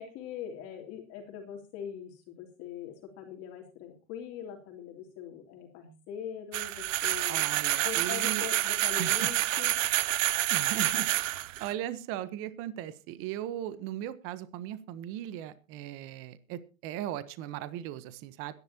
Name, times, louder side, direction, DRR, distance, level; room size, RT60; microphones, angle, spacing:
voice 1, 0.0-7.5 7.8-9.7, left 8 dB, 35° left, 2 dB, 3.1 m, -42 dB
sound 1, 6.5-11.7, right 14 dB, 70° right, 0.9 m, -28 dB
voice 2, 7.3-8.5 9.0-9.3 10.5-18.5, right 12 dB, 35° right, 15 dB, 1.1 m, -38 dB
23.5 x 11.0 x 2.9 m, 0.32 s
hypercardioid pair, 140°, 40 cm